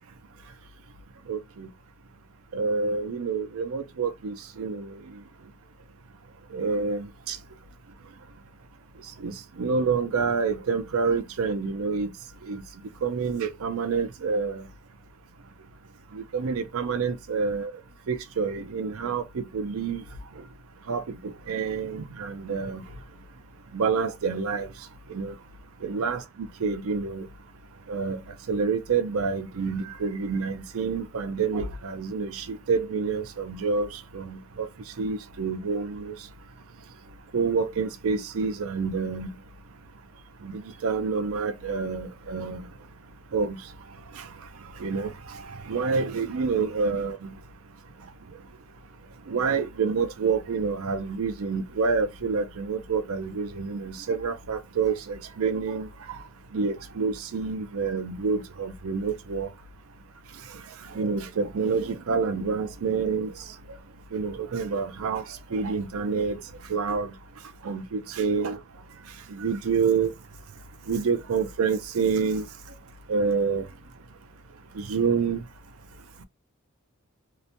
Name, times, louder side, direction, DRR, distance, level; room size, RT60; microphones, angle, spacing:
voice 1, 1.3-1.7 2.5-4.9 6.5-7.4 9.2-12.1 12.5-12.6 13.0-14.6 16.1-17.7 18.1-20.0 20.9-22.8 23.7-24.7 25.1-25.3 25.8-27.3 27.9-28.2 28.5-34.7 35.0-36.1 37.3-39.3 40.4-42.6 43.3-43.6 44.2-44.3 44.8-45.1 45.7-47.3 49.3-55.9 56.5-59.5 60.9-63.3 64.1-65.2 65.5-66.4 66.7-67.1 67.6-68.6 69.3-70.1 70.9-72.5 73.1-73.7 74.8-75.4, right 5 dB, 70° right, 0.4 m, -28 dB
2.9 x 2.1 x 2.6 m
head